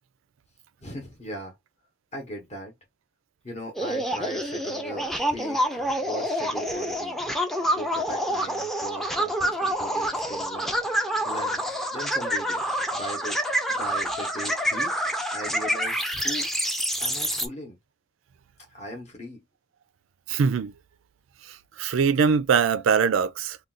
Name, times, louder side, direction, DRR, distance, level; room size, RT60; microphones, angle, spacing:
voice 1, 0.8-1.6 2.1-2.7 3.4-7.2 7.7-10.8 11.2-11.6 11.9-12.6 12.9-13.4 13.7-14.9 15.3-16.5 17.0-17.8 18.7-19.4, equal, 35° left, 0.8 m, -38 dB
sound 1, 3.7-17.5, equal, ahead, 0.4 m, -27 dB
voice 2, 20.3-20.7 21.5-23.6, right 6 dB, 70° right, 0.4 m, -22 dB
2.5 x 2.3 x 3.7 m
head